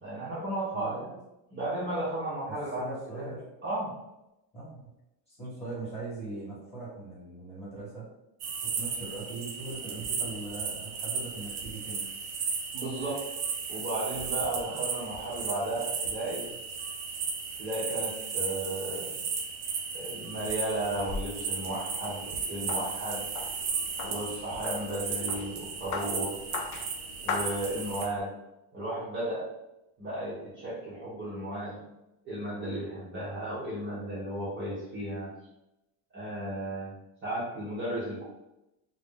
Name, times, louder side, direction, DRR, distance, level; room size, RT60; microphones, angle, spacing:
voice 1, 0.0-1.1 1.5-3.4 3.6-3.9 12.7-13.3 13.7-16.5 17.6-19.2 19.9-23.3 24.0-26.4 27.2-28.3 28.7-29.5 30.0-31.8 32.3-35.3 36.1-36.9 37.2-38.2, right 1 dB, 25° right, -9 dB, 0.7 m, -34 dB
voice 2, 0.7-1.1 2.5-3.5 4.5-4.9 5.3-8.1 8.6-12.0 14.6-14.8, right 3 dB, 15° left, -8 dB, 1.2 m, -40 dB
sound 1, 8.4-28.1, right 5 dB, 70° right, 0.7 m, -35 dB
sound 2, 20.6-28.2, left 4 dB, 75° left, 0.6 m, -40 dB
2.5 x 2.0 x 3.6 m, 0.93 s
cardioid pair, 145°, 47 cm